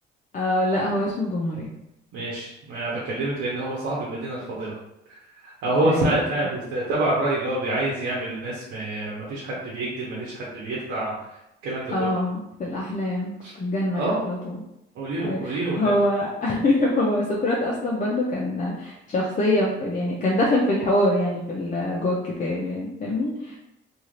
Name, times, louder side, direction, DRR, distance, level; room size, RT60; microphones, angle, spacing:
voice 1, 0.3-1.7 5.8-6.2 11.9-14.6 15.2-23.6, left 1 dB, 40° left, -4 dB, 0.6 m, -24 dB
voice 2, 2.1-4.7 5.6-11.2 11.6-11.9 13.4-13.5 13.9-14.2 15.0-15.9, right 2 dB, 90° right, -6 dB, 0.8 m, -27 dB
2.7 x 2.4 x 3.1 m, 0.86 s
cardioid pair, 90°, 20 cm